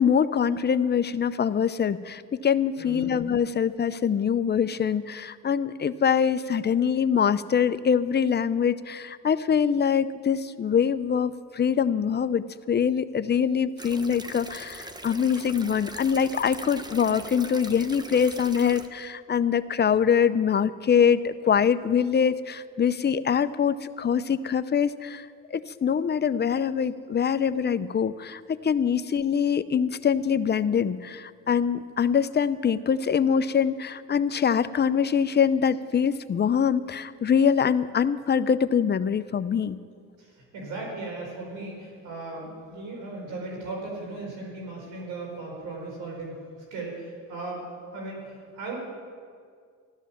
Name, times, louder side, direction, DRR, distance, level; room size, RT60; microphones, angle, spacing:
voice 1, 0.0-25.3 25.5-39.8, left 7 dB, 35° left, 13 dB, 0.6 m, -24 dB
voice 2, 2.8-3.1 40.2-46.4 46.7-48.8, right 2 dB, 90° right, -1 dB, 4.7 m, -37 dB
sound 1, 13.8-18.9, right 1 dB, 15° right, 1.0 m, -41 dB
15.0 x 12.5 x 7.1 m, 2.1 s
cardioid pair, 90°, 30 cm